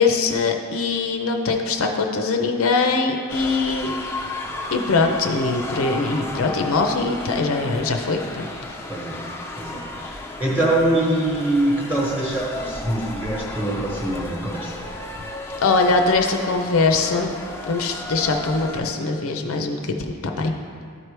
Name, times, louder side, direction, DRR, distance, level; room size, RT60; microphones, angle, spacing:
voice 1, 0.0-4.3 4.7-8.5 15.6-17.3 17.7-20.0 20.2-20.6, left 3 dB, 70° left, 4 dB, 0.5 m, -22 dB
sound 1, 3.3-18.8, left 2 dB, 10° left, 0.4 m, -34 dB
voice 2, 8.9-9.2 9.6-14.7, right 1 dB, 10° right, -5 dB, 1.1 m, -24 dB
12.0 x 4.6 x 3.3 m, 2.2 s
head